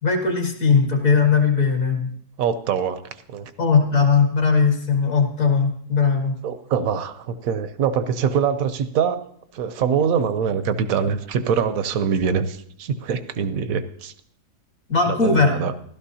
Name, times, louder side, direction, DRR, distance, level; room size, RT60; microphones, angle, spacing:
voice 1, 0.0-2.1 3.6-6.3 14.9-15.5, left 5 dB, 55° left, 2 dB, 2.1 m, -19 dB
voice 2, 2.4-3.0 3.3-3.5 6.4-9.2 9.5-14.1 15.1-15.7, right 7 dB, 65° right, 11 dB, 1.1 m, -23 dB
15.5 x 12.0 x 2.8 m, 0.65 s
omnidirectional pair, 1.7 m